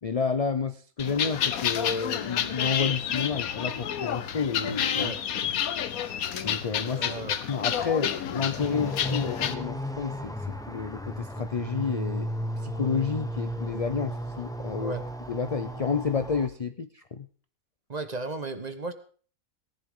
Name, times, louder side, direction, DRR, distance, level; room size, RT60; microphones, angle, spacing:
voice 1, 0.0-5.1 5.8-5.9 6.4-7.0 7.5-12.3 12.6-14.9 15.3-17.3, left 5 dB, 50° left, 11 dB, 0.4 m, -30 dB
sound 1, 1.0-9.5, left 9 dB, 85° left, 1.3 m, -30 dB
voice 2, 6.9-7.4 14.8-15.0 17.9-18.9, right 2 dB, 30° right, 9 dB, 1.1 m, -34 dB
sound 2, 8.6-16.5, equal, 5° left, 1.1 m, -34 dB
18.5 x 11.0 x 3.8 m, 0.42 s
omnidirectional pair, 1.5 m